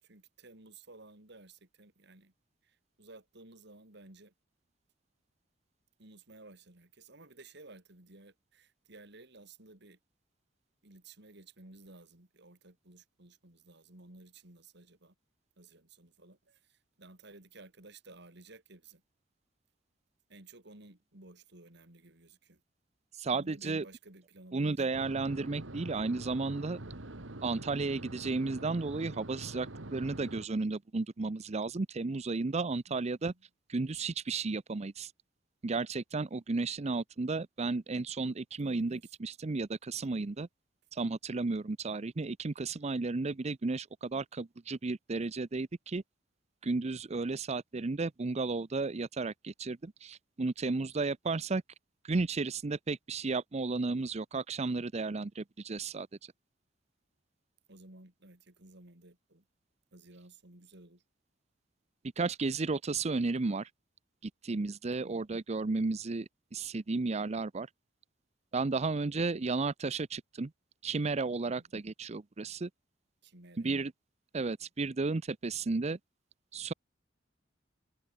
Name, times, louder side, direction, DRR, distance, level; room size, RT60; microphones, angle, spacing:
voice 1, 0.0-2.3 2.6-4.3 6.0-10.0 10.8-15.2 15.6-19.0 20.3-22.6 23.3-24.8 32.9-33.4 38.6-39.1 57.7-59.5 59.9-61.0 62.9-63.0 64.9-65.2 71.5-71.7 73.2-73.7, right 2 dB, 65° right, 3.6 m, -55 dB
voice 2, 23.1-23.9 24.5-26.8 27.4-33.3 33.7-35.1 35.6-40.5 40.9-46.0 46.6-51.6 52.0-56.3 62.2-63.7 64.2-67.7 68.5-70.5 70.8-72.7 73.6-73.9 74.3-76.0 76.5-76.7, right 3 dB, 35° right, 0.6 m, -33 dB
sound 1, 24.9-30.5, right 2 dB, 85° right, 2.1 m, -44 dB
head